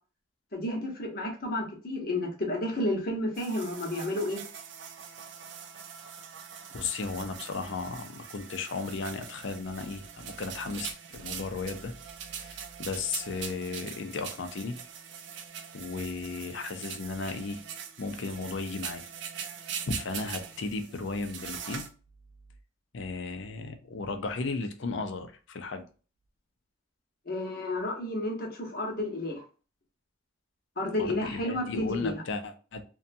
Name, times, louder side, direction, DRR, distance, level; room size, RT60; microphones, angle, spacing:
voice 1, 0.5-4.4 27.3-29.4 30.8-32.2, left 1 dB, 45° left, -1 dB, 0.9 m, -31 dB
sound 1, 3.3-21.9, right 7 dB, 60° right, 0.4 m, -42 dB
voice 2, 6.7-11.9 12.4-14.8 15.7-17.6 18.0-19.1 19.9-21.9 22.9-25.9 31.0-32.8, left 4 dB, 65° left, 7 dB, 0.5 m, -35 dB
2.7 x 2.2 x 2.6 m, 0.36 s
head